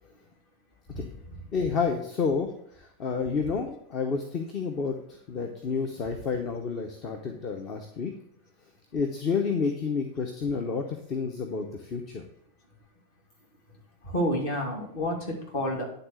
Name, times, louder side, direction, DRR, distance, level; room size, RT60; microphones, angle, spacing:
voice 1, 0.9-1.4 14.0-15.8, equal, 50° left, 0 dB, 2.7 m, -30 dB
voice 2, 1.5-2.5 2.8-5.0 5.3-8.1 8.9-12.2, left 5 dB, 35° left, 5 dB, 0.9 m, -30 dB
10.0 x 3.9 x 6.4 m, 0.69 s
figure-of-eight pair, 90°, 0 cm